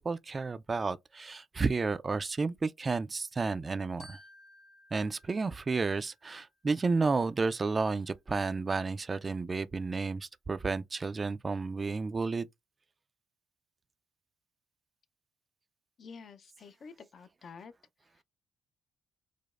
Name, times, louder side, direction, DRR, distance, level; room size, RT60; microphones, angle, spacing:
voice 1, 0.0-4.2 4.9-12.5, right 4 dB, 30° right, 0.3 m, -31 dB
Glockenspiel, 4.0-6.5, left 1 dB, 80° left, 2.6 m, -57 dB
voice 2, 16.0-17.7 18.0-18.2, left 5 dB, 55° left, 0.5 m, -50 dB
4.9 x 2.0 x 2.4 m
cardioid pair, 90°, 0 cm